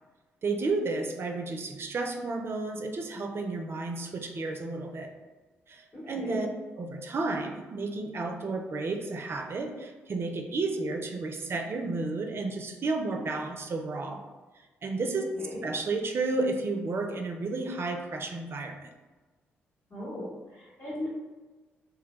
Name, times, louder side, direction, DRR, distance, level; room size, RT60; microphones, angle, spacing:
voice 1, 0.4-5.1 5.7-6.5 6.8-14.2 14.8-15.2 15.6-18.9, right 3 dB, 45° right, 3 dB, 0.4 m, -32 dB
voice 2, 5.9-6.4 15.3-15.7 19.9-21.1, left 1 dB, 40° left, -8 dB, 0.9 m, -38 dB
2.1 x 2.1 x 2.9 m, 1.2 s
hypercardioid pair, 45°, 6 cm